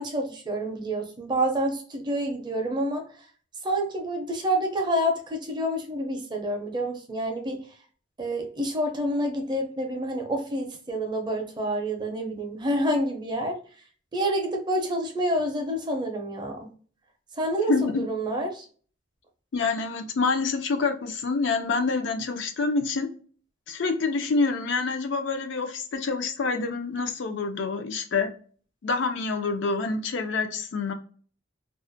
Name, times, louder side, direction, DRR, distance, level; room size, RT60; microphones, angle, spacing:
voice 1, 0.0-3.0 3.6-7.6 8.2-13.6 14.1-16.7 17.4-18.6, right 1 dB, 25° right, 3 dB, 0.5 m, -28 dB
voice 2, 17.7-18.0 19.5-23.1 23.7-28.3 28.8-30.9, left 4 dB, 70° left, 6 dB, 0.4 m, -27 dB
2.3 x 2.1 x 2.5 m, 0.43 s
head